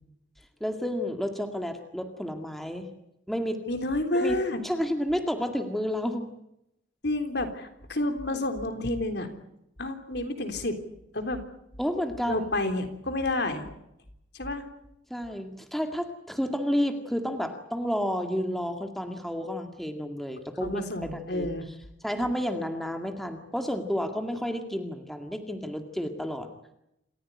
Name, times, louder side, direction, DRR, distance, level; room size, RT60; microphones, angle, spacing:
voice 1, 0.6-2.9 3.3-3.6 4.1-4.4 4.6-6.3 11.8-12.5 15.1-21.5 22.0-26.5, equal, ahead, 5 dB, 2.0 m, -31 dB
voice 2, 3.7-4.6 7.0-9.3 9.8-10.8 11.1-11.4 12.3-13.7 14.3-14.6 20.6-21.7, left 1 dB, 60° left, 7 dB, 3.6 m, -29 dB
28.0 x 15.5 x 9.9 m, 0.81 s
head